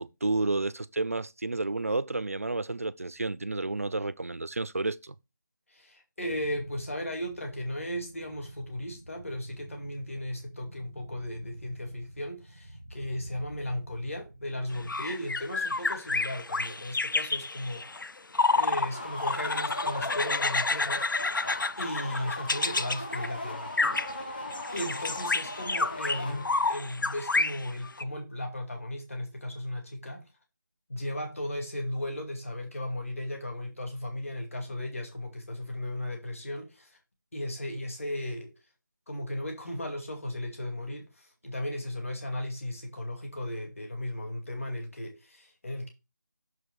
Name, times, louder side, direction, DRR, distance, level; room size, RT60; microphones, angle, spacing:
voice 1, 0.0-5.1, right 2 dB, 45° right, 0.4 m, -31 dB
voice 2, 5.7-18.0 18.5-21.1 21.8-24.4 24.7-30.3 30.9-37.0 37.3-38.5 39.1-45.9, left 1 dB, 45° left, 2.3 m, -36 dB
Rocket Roar (looping), 6.2-14.9, right 1 dB, 5° left, 0.5 m, -48 dB
sound 1, 14.8-18.9 19.2-23.3 23.8-24.1 24.5-28.0, left 3 dB, 80° left, 0.6 m, -29 dB
sound 2, 18.5-26.8, left 2 dB, 30° left, 1.1 m, -39 dB
6.4 x 5.2 x 4.7 m
figure-of-eight pair, 180°, 11 cm